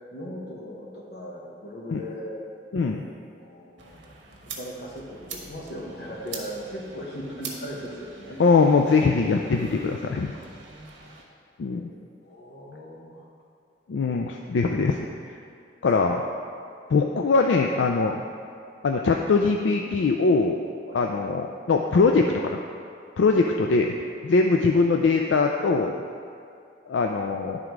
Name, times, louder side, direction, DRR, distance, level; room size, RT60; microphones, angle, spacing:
voice 1, 0.0-2.4 2.8-3.1 3.4-4.0 4.4-8.4 10.3-10.4 10.9-11.1 11.8-11.9 12.2-13.2 20.9-21.0, equal, 60° left, -3 dB, 1.3 m, -38 dB
voice 2, 2.7-3.0 8.4-10.3 11.6-11.9 13.9-15.0 15.3-15.4 15.8-16.2 16.9-18.2 18.8-20.6 20.9-22.6 23.2-23.9 24.2-26.0 26.9-27.6, left 4 dB, 80° left, 2 dB, 0.4 m, -22 dB
sound 1, 3.8-11.2, right 4 dB, 75° right, 1.2 m, -43 dB
10.5 x 3.7 x 4.7 m, 2.4 s
head